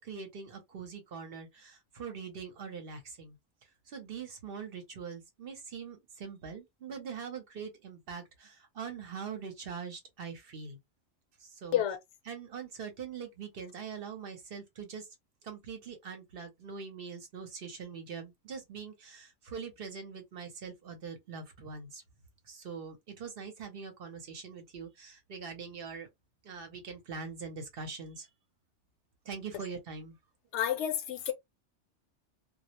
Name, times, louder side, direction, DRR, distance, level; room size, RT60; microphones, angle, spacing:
voice 1, 0.0-3.4 3.9-10.8 11.4-11.8 12.3-15.1 15.4-22.0 22.4-26.1 26.4-28.3 29.2-30.2, right 6 dB, 60° right, 0.8 m, -43 dB
voice 2, 30.5-31.3, left 10 dB, 75° left, 0.9 m, -29 dB
2.2 x 2.0 x 2.9 m
omnidirectional pair, 1.2 m